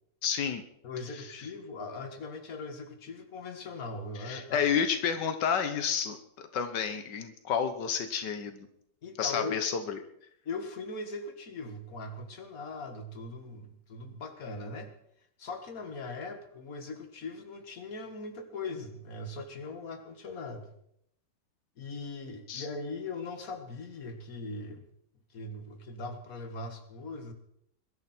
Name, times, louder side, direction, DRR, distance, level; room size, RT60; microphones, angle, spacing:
voice 1, 0.2-0.6 4.2-8.7 9.2-10.0 22.5-22.7, left 7 dB, 85° left, 8 dB, 1.7 m, -30 dB
voice 2, 0.8-4.7 9.0-9.6 10.5-14.9 15.4-20.7 21.8-24.9 25.3-27.3, left 3 dB, 55° left, 6 dB, 2.2 m, -40 dB
22.5 x 12.5 x 4.4 m, 0.74 s
omnidirectional pair, 1.8 m